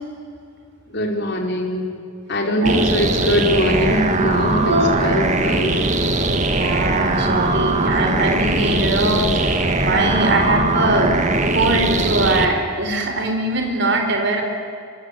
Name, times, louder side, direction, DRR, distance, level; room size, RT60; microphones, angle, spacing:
voice 1, 0.9-1.9 2.3-4.7 5.0-5.7, equal, 50° left, 2 dB, 4.5 m, -21 dB
sound 1, 2.6-12.5, right 2 dB, 35° right, 2.0 m, -20 dB
voice 2, 6.5-11.1 11.5-14.4, right 2 dB, 55° right, 3 dB, 4.7 m, -21 dB
25.0 x 24.5 x 9.6 m, 2.2 s
head